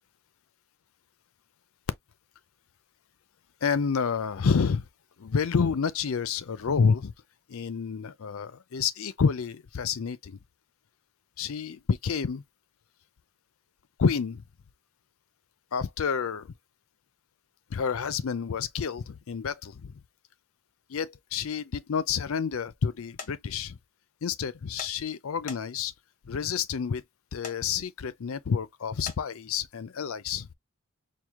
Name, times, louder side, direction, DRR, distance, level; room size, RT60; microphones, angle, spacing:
voice 1, 3.6-4.9 5.2-7.1 7.5-10.4 11.4-12.4 14.0-14.4 15.7-16.5 17.7-20.0 20.9-23.8 24.2-25.9 26.3-27.0 27.3-30.5, left 6 dB, 70° left, 0.5 m, -29 dB
sound 1, 23.2-23.3 24.8-24.9 25.5-25.9 27.4-27.6 29.1-29.2, left 5 dB, 35° left, 0.8 m, -39 dB
4.7 x 2.1 x 3.5 m
head